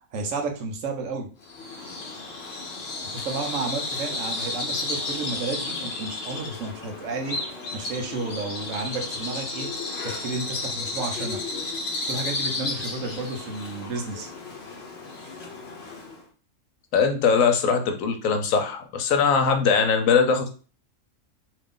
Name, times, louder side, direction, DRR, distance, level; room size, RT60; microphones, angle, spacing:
voice 1, 0.1-1.3 3.0-7.4 7.7-9.7 10.0-11.4 12.1-14.3 15.2-15.3, right 3 dB, 80° right, 3 dB, 1.1 m, -32 dB
Bird vocalization bird call bird song, 1.4-16.2, left 3 dB, 55° left, 1.0 m, -33 dB
voice 2, 16.9-20.5, left 5 dB, 80° left, 5 dB, 1.1 m, -21 dB
2.9 x 2.5 x 3.6 m, 0.37 s
omnidirectional pair, 1.4 m